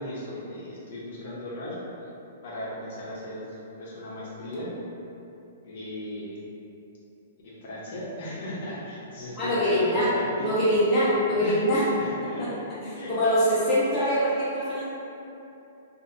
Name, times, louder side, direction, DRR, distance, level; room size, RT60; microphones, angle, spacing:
voice 1, 0.0-1.8 2.4-4.7 5.6-6.4 7.4-10.5 11.4-11.6 11.9-12.6 12.9-13.3, left 1 dB, 55° left, -7 dB, 0.7 m, -37 dB
voice 2, 9.4-11.9 12.2-12.5 12.8-14.8, equal, 15° left, -12 dB, 0.6 m, -24 dB
2.7 x 2.5 x 2.5 m, 2.9 s
hypercardioid pair, 165°, 0 cm